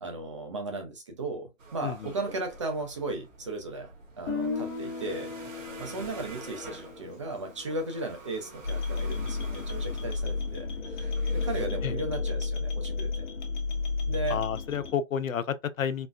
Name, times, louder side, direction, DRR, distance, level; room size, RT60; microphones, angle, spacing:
voice 1, 0.0-10.7 11.0-13.2 14.1-14.4, right 2 dB, 25° right, 0.5 m, -36 dB
sound 1, 1.6-11.7, right 3 dB, 70° right, 1.5 m, -47 dB
Guitar, 4.3-8.2, left 4 dB, 20° left, 0.7 m, -37 dB
sound 2, 8.6-14.9, left 3 dB, 60° left, 1.1 m, -31 dB
voice 2, 14.3-16.1, left 8 dB, 85° left, 0.6 m, -30 dB
4.1 x 2.2 x 2.2 m
hypercardioid pair, 145°, 39 cm